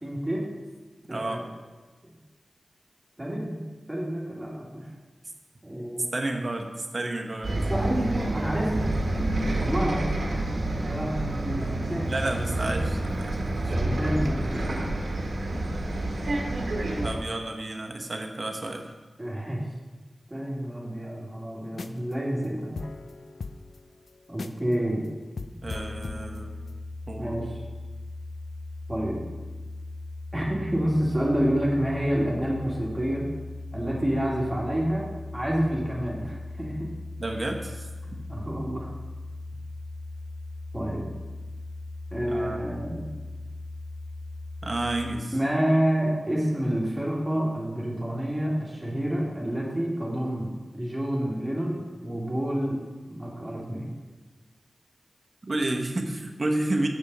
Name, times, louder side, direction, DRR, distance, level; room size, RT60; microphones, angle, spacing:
voice 1, 0.0-0.5 1.1-1.5 3.2-4.9 5.6-6.0 7.7-8.9 9.6-10.1 10.9-12.3 12.6-12.7 13.6-14.9 19.2-19.6 20.3-22.8 24.3-25.1 27.2-27.6 28.9-29.2 30.3-33.3 33.7-36.9 38.2-38.9 40.7-41.1 42.1-43.1 45.3-52.8 53.0-53.9, equal, 15° right, -4 dB, 2.1 m, -28 dB
voice 2, 1.1-1.4 6.1-7.6 12.1-13.7 17.0-18.9 25.6-26.5 27.1-27.4 37.2-37.9 42.2-42.6 43.3-43.4 44.6-45.3 55.4-56.9, right 2 dB, 45° right, 2 dB, 1.1 m, -31 dB
Bus, 7.4-17.1, right 1 dB, 70° right, 1.4 m, -28 dB
sound 1, 21.8-22.1 22.4-22.5 22.8-24.7 25.1-25.2 25.4-26.8, left 4 dB, 80° left, 0.4 m, -39 dB
sound 2, 25.6-45.2, left 2 dB, 35° left, 0.6 m, -39 dB
7.3 x 7.0 x 5.4 m, 1.3 s
wide cardioid pair, 65°, 0 cm